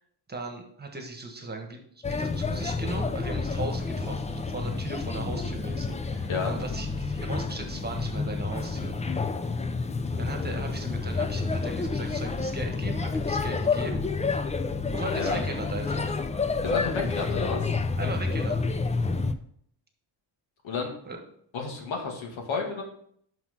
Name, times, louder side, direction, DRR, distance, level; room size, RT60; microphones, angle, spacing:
voice 1, 0.3-1.8 2.1-9.0 10.2-14.0 14.9-16.2 17.9-18.6 21.0-21.2, right 2 dB, 20° right, 3 dB, 1.4 m, -37 dB
Male speech man speaking / Child speech kid speaking / Chatter, 2.0-19.3, left 4 dB, 15° left, 0.4 m, -29 dB
voice 2, 16.6-17.6 20.6-20.9 21.5-22.8, left 4 dB, 85° left, 2 dB, 2.1 m, -31 dB
6.0 x 5.9 x 5.7 m, 0.65 s
cardioid pair, 130°, 46 cm